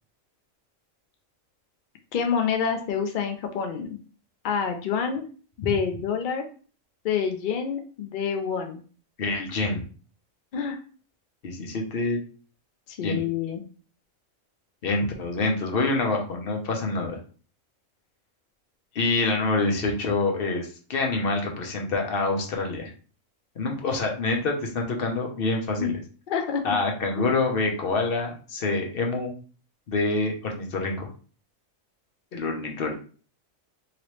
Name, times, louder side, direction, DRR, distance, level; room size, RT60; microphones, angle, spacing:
voice 1, 2.1-4.0 4.4-5.2 5.6-6.4 7.0-8.8 10.5-10.8 12.9-13.6 25.8-26.0 26.3-26.7, left 7 dB, 75° left, 5 dB, 0.4 m, -27 dB
voice 2, 9.2-9.8 11.4-12.2 13.0-13.2 14.8-17.2 18.9-22.9 23.6-26.0 26.6-29.3 29.9-31.1 32.3-32.9, left 3 dB, 50° left, 2 dB, 0.8 m, -26 dB
2.9 x 2.9 x 3.1 m, 0.39 s
omnidirectional pair, 1.4 m